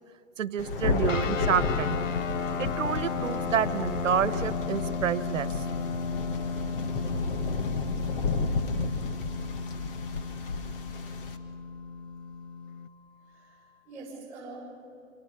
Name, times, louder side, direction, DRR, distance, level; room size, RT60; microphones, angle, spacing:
voice 1, 0.4-2.0 2.6-5.6, right 8 dB, 85° right, 15 dB, 1.2 m, -29 dB
Thunder, 0.6-11.4, left 3 dB, 45° left, 1.9 m, -32 dB
sound 1, 1.0-13.8, left 5 dB, 15° left, 5.0 m, -53 dB
sound 2, 1.1-12.9, left 5 dB, 90° left, 1.4 m, -35 dB
voice 2, 13.2-14.6, right 3 dB, 15° right, -7 dB, 6.5 m, -45 dB
27.5 x 26.5 x 5.5 m, 2.9 s
hypercardioid pair, 160°, 37 cm